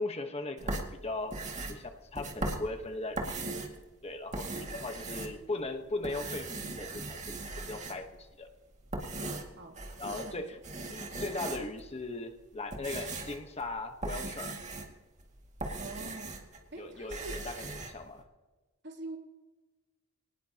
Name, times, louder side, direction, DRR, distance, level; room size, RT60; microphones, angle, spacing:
voice 1, 0.0-1.4 1.7-3.4 4.0-8.5 9.2-9.3 10.0-10.6 10.9-14.6 16.8-18.2, left 2 dB, 30° left, 6 dB, 1.2 m, -38 dB
sound 1, 0.6-3.8 4.2-5.7 6.0-8.2 8.7-10.4 10.6-11.8 12.4-16.6 16.9-17.9, right 2 dB, 35° right, 2.1 m, -39 dB
voice 2, 4.7-5.4 9.6-10.5 15.8-16.4 16.7-17.4 18.8-19.2, right 2 dB, 55° right, 1 dB, 2.9 m, -45 dB
23.5 x 18.5 x 2.9 m, 1.2 s
head